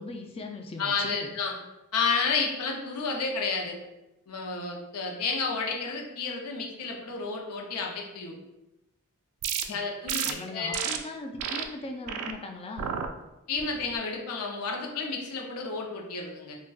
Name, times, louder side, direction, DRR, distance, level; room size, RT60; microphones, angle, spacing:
voice 1, 0.0-1.3 9.6-9.8 10.3-12.9, left 2 dB, 25° left, 4 dB, 0.3 m, -39 dB
voice 2, 0.8-1.5 1.9-3.8 4.3-8.4 9.7-10.8 13.5-16.6, left 4 dB, 75° left, 0 dB, 0.5 m, -31 dB
sound 1, 9.4-9.6 10.1-10.3 10.7-11.0 11.4-11.6 12.1-12.3 12.8-13.1 13.6-13.9, right 8 dB, 75° right, 0.3 m, -31 dB
3.8 x 2.1 x 2.3 m, 0.96 s
head